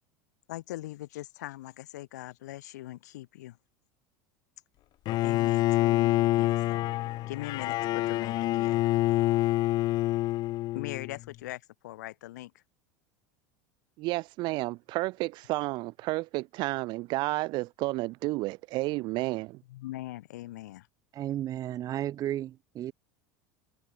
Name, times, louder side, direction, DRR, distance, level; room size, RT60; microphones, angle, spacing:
voice 1, 0.5-3.6 5.2-9.3 10.7-12.6 19.6-20.9, left 16 dB, 85° left, 5.3 m, -41 dB
Bowed string instrument, 5.1-11.2, left 16 dB, 50° left, 1.5 m, -26 dB
voice 2, 14.0-19.6, right 21 dB, 55° right, 4.0 m, -31 dB
voice 3, 21.1-22.9, right 12 dB, 40° right, 3.5 m, -33 dB
supercardioid pair, 120°, 9 cm